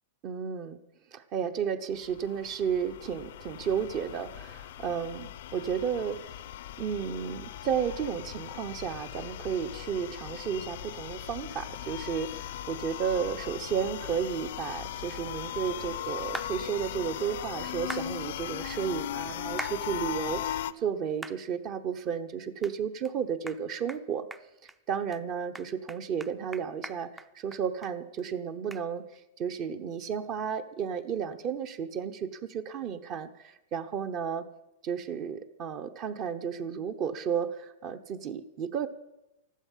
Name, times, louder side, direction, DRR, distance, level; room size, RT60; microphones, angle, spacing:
voice 1, 0.2-0.8 1.1-6.2 6.8-24.3 24.6-34.4 34.8-38.9, right 7 dB, 35° right, 9 dB, 0.9 m, -33 dB
sound 1, 2.0-20.7, left 12 dB, 70° left, 0.7 m, -38 dB
sound 2, 16.3-16.5 17.9-18.1 19.6-19.8 20.3-20.4 21.2-21.4 21.9-22.0 22.6-22.7 23.0-23.1 23.5-23.6 23.9-24.0 24.3-24.8 25.1-25.2 25.5-27.9 28.2-28.3 28.7-28.8, right 2 dB, 5° right, 0.6 m, -40 dB
14.0 x 12.0 x 7.4 m, 0.91 s
supercardioid pair, 145°, 0 cm